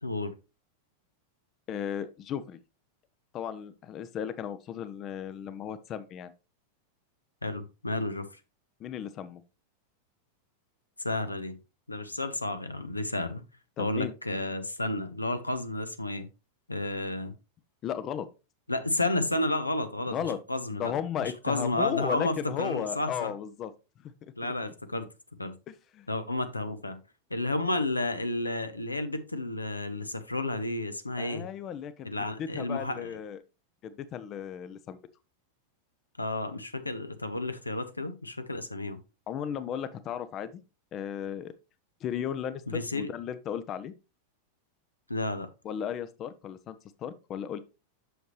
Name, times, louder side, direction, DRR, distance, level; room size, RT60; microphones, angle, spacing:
voice 1, 0.0-0.3 7.4-8.3 11.0-11.6 11.9-13.4 13.8-16.3 16.7-17.3 18.7-20.2 20.5-20.9 21.2-23.3 24.4-25.1 25.4-25.6 26.1-27.0 27.3-31.5 32.0-33.2 36.2-39.0 42.7-43.1 45.1-45.5, left 2 dB, 85° left, 0.8 m, -31 dB
voice 2, 1.7-2.6 3.3-6.3 8.8-9.4 13.8-14.1 17.8-18.3 20.1-20.4 20.8-23.7 24.0-24.1 24.6-24.7 25.7-26.1 31.2-32.1 32.4-33.4 33.8-35.0 39.3-40.5 40.9-41.5 42.0-42.6 42.9-43.9 45.6-47.6, left 9 dB, 30° left, 0.6 m, -35 dB
7.9 x 6.5 x 3.1 m
figure-of-eight pair, 90°, 0 cm